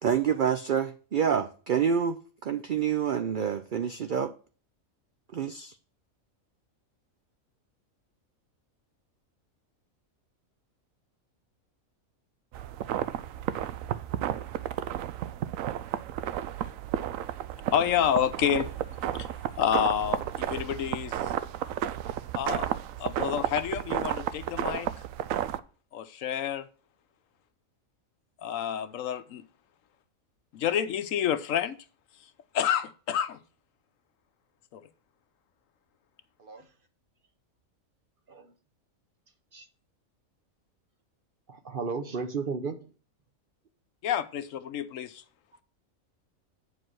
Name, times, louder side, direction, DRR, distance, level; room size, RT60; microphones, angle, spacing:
voice 1, 0.0-4.3 5.3-5.7, right 7 dB, 60° right, 0.5 m, -27 dB
sound 1, 12.5-25.6, right 11 dB, 80° right, 1.0 m, -32 dB
voice 2, 17.7-21.3 22.3-22.7 23.0-24.9 25.9-26.7 28.4-29.5 30.5-31.8 32.5-33.4 34.7-34.9 44.0-45.2, left 9 dB, 75° left, 1.0 m, -29 dB
voice 3, 41.5-42.9, right 4 dB, 45° right, 1.0 m, -34 dB
8.2 x 4.9 x 6.1 m
omnidirectional pair, 1.4 m